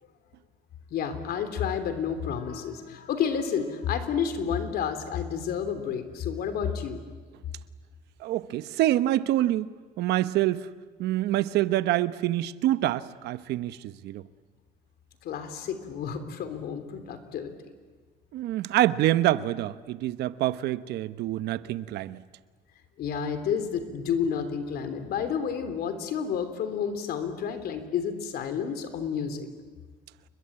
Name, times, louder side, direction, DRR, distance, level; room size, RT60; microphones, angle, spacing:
voice 1, 0.9-7.0 15.2-17.5 23.0-29.5, left 7 dB, 70° left, 3.4 m, -30 dB
voice 2, 8.2-10.7 11.0-14.2 18.3-22.2, right 14 dB, 80° right, 1.0 m, -26 dB
29.5 x 22.0 x 8.7 m
cardioid pair, 110°, 17 cm